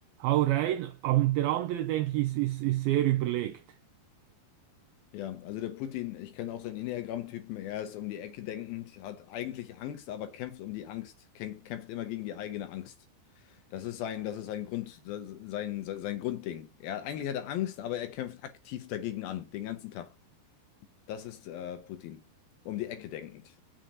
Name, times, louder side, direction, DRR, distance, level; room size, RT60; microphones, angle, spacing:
voice 1, 0.2-3.6, right 15 dB, 90° right, 2.1 m, -27 dB
voice 2, 5.1-12.9 13.7-20.1 21.1-22.2 22.7-23.4, left 12 dB, 80° left, 2.3 m, -37 dB
7.6 x 6.5 x 2.9 m
omnidirectional pair, 4.8 m